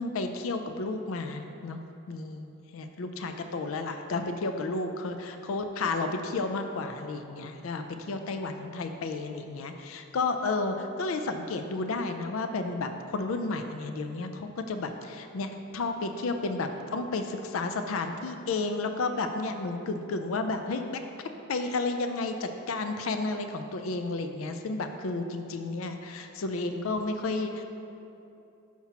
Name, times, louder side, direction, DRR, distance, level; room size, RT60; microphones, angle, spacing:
voice 1, 0.0-1.8 2.1-21.0 21.5-27.6, left 3 dB, 85° left, 7 dB, 0.4 m, -32 dB
5.8 x 4.3 x 5.7 m, 2.8 s
head